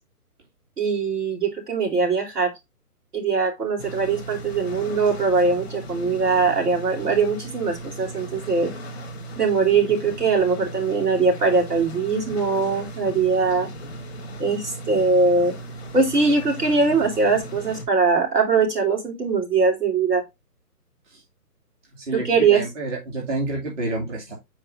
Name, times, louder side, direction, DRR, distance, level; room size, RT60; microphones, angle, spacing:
voice 1, 0.8-2.5 3.1-8.7 9.4-13.7 14.4-15.6 15.9-20.2 22.1-22.6, right 4 dB, 75° right, 1 dB, 3.6 m, -21 dB
sound 1, 3.8-17.8, right 1 dB, ahead, 0.7 m, -37 dB
voice 2, 22.0-24.3, right 2 dB, 50° right, -1 dB, 2.5 m, -29 dB
7.8 x 4.8 x 2.6 m, 0.20 s
hypercardioid pair, 155°, 47 cm